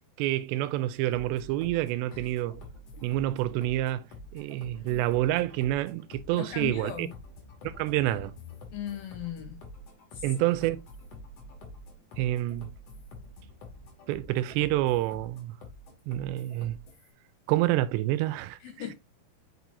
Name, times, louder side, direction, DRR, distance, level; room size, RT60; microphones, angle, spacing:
voice 1, 0.2-2.6 3.0-4.0 4.3-7.1 7.6-8.3 10.2-10.8 12.2-12.7 14.1-15.6 16.1-16.8 17.5-18.6, right 15 dB, 90° right, 2.8 m, -28 dB
sound 1, 1.1-17.1, left 2 dB, 55° left, 3.0 m, -47 dB
voice 2, 6.3-7.1 8.7-9.6 10.1-10.3 18.6-18.9, left 11 dB, 80° left, 2.2 m, -38 dB
6.3 x 6.1 x 2.7 m
omnidirectional pair, 4.9 m